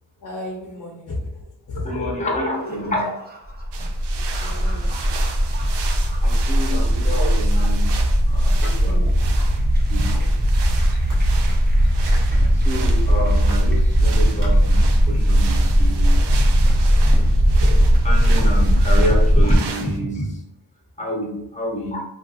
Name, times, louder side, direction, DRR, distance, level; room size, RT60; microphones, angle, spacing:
voice 1, 0.2-2.7 4.1-5.7 8.6-9.3 10.2-10.4 16.9-17.9 18.3-18.7, left 2 dB, 60° left, -3 dB, 0.8 m, -35 dB
voice 2, 1.8-3.1 3.8-3.9 6.2-7.8 8.3-9.0 9.9-10.1 12.3-16.6 18.0-20.3 21.0-22.0, equal, 20° left, -2 dB, 0.8 m, -28 dB
sound 1, 2.6-19.6, equal, 25° right, 0.6 m, -18 dB
sound 2, 3.7-20.0, right 6 dB, 85° right, 0.5 m, -36 dB
sound 3, 8.6-8.8 9.1-9.2 9.4-10.3 10.8-11.3 11.6-14.5, equal, 55° right, 1.0 m, -41 dB
3.4 x 2.7 x 2.5 m, 0.83 s
wide cardioid pair, 140°, 40 cm